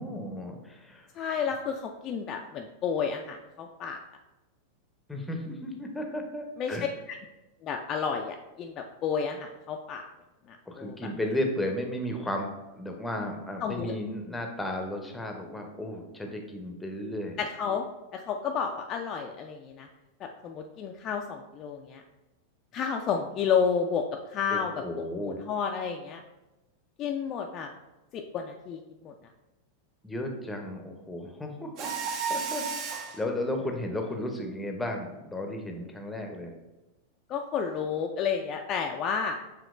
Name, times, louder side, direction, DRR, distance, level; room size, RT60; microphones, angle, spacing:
voice 1, 0.0-1.1 5.1-6.8 10.7-12.5 12.7-17.4 24.5-25.4 30.0-31.9 32.3-36.5, left 1 dB, 5° left, 2 dB, 0.7 m, -34 dB
voice 2, 1.2-4.0 6.6-6.8 7.1-7.2 7.6-10.0 10.5-11.0 13.6-13.9 17.4-17.8 18.1-19.9 20.4-22.0 22.7-24.0 24.3-26.2 27.0-27.7 28.1-29.1 37.3-39.4, left 6 dB, 35° left, 3 dB, 0.3 m, -31 dB
Mechanisms, 31.8-33.2, right 5 dB, 35° right, 0.5 m, -32 dB
6.9 x 2.9 x 2.5 m, 1.0 s
figure-of-eight pair, 90°, 0 cm